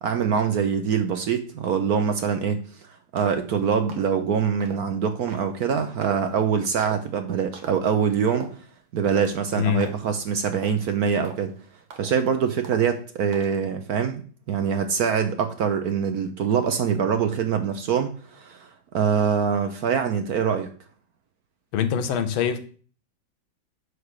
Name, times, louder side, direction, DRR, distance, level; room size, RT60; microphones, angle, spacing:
voice 1, 0.0-2.6 3.1-8.5 8.9-11.5 12.0-14.2 14.5-20.7, right 7 dB, 65° right, 1.0 m, -24 dB
sound 1, 3.2-3.5 3.9-4.2 4.6-4.9 5.3-5.5 6.0-6.4 6.8-7.0 7.5-7.9 8.3-8.6 9.0-9.4 9.8-10.1 10.5-10.9 11.2-11.5 11.9-12.3 12.6-13.0 13.3-13.6, right 6 dB, 90° right, 2.1 m, -40 dB
voice 2, 9.6-10.0 21.7-22.6, left 8 dB, 85° left, 1.7 m, -24 dB
9.5 x 3.4 x 6.4 m
omnidirectional pair, 2.2 m